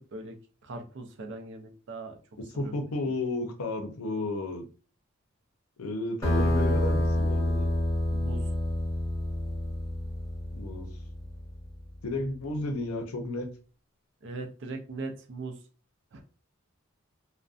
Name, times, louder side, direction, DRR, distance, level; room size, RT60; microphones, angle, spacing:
voice 1, 0.6-2.2 2.6-2.7 8.1-8.5 14.2-15.6 16.1-16.2, right 3 dB, 55° right, 0.5 m, -39 dB
voice 2, 2.5-4.6 5.8-7.7 10.5-10.9 12.0-13.5, left 2 dB, 90° left, 0.6 m, -33 dB
sound 1, 6.2-11.3, left 1 dB, 15° left, 1.0 m, -28 dB
2.5 x 2.1 x 2.4 m
head